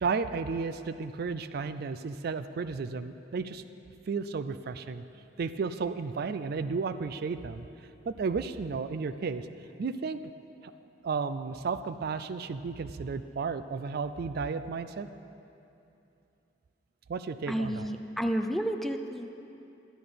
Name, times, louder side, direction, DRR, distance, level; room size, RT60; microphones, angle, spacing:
voice 1, 0.0-3.6 4.1-5.0 5.4-7.7 8.1-9.5 9.8-10.2 10.6-10.7 11.0-15.1 17.1-17.9, right 5 dB, 55° right, 12 dB, 0.4 m, -33 dB
voice 2, 17.5-19.3, equal, ahead, 5 dB, 0.4 m, -31 dB
11.0 x 11.0 x 5.1 m, 2.8 s
head